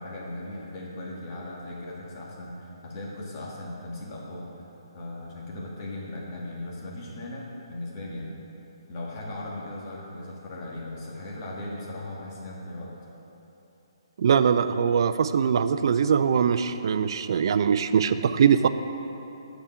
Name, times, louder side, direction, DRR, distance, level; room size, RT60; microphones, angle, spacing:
voice 1, 0.0-4.7 4.9-8.3 8.9-12.9, left 1 dB, 40° left, -4 dB, 1.9 m, -38 dB
voice 2, 14.2-18.7, right 7 dB, 55° right, 11 dB, 0.4 m, -22 dB
9.5 x 5.0 x 5.8 m, 3.0 s
hypercardioid pair, 150°, 3 cm